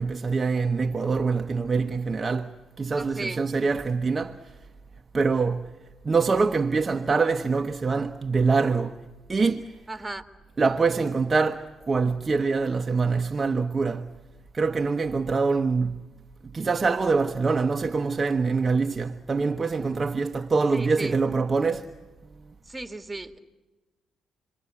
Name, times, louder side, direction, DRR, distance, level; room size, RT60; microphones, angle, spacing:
voice 1, 0.0-4.4 5.1-5.7 6.0-9.0 9.3-9.7 10.6-14.1 14.5-16.0 16.4-21.9, right 4 dB, 35° right, 1.1 m, -24 dB
voice 2, 3.0-3.4 9.9-10.3 20.7-21.2 22.7-23.4, right 2 dB, 15° right, 2.3 m, -35 dB
28.5 x 23.5 x 8.5 m
supercardioid pair, 60°, 0 cm